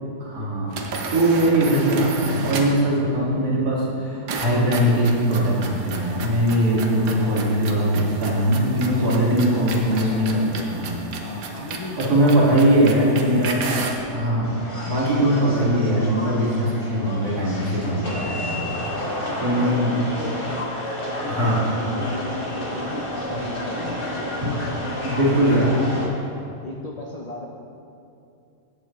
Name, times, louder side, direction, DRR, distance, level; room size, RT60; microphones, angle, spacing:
voice 1, 0.2-0.8 1.1-10.4 10.7-11.0 12.0-13.6 14.1-14.5 14.8-18.8 19.4-19.9 21.3-21.6 25.0-25.7, right 1 dB, 70° right, -6 dB, 2.6 m, -20 dB
sound 1, 0.7-2.9 4.3-14.1, right 3 dB, 85° right, 1.5 m, -33 dB
voice 2, 7.2-7.5 9.0-10.7 11.2-13.4 15.4-15.7 18.6-20.4 21.0-26.2 26.6-27.5, left 2 dB, 60° left, -1 dB, 0.4 m, -36 dB
sound 2, 14.4-26.1, left 1 dB, 35° left, 1.7 m, -31 dB
15.5 x 7.0 x 3.1 m, 2.6 s
omnidirectional pair, 1.7 m